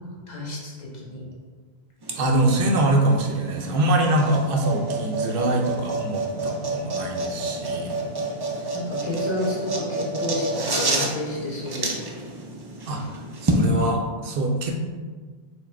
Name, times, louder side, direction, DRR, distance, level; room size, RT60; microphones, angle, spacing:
voice 1, 0.3-1.2 8.7-11.9, left 1 dB, 45° left, -5 dB, 1.0 m, -31 dB
sound 1, 2.0-13.7, right 2 dB, 35° right, 0.4 m, -29 dB
voice 2, 2.2-8.0 12.9-14.7, right 1 dB, 65° right, 2 dB, 0.8 m, -24 dB
4.5 x 2.1 x 4.4 m, 1.5 s
omnidirectional pair, 1.1 m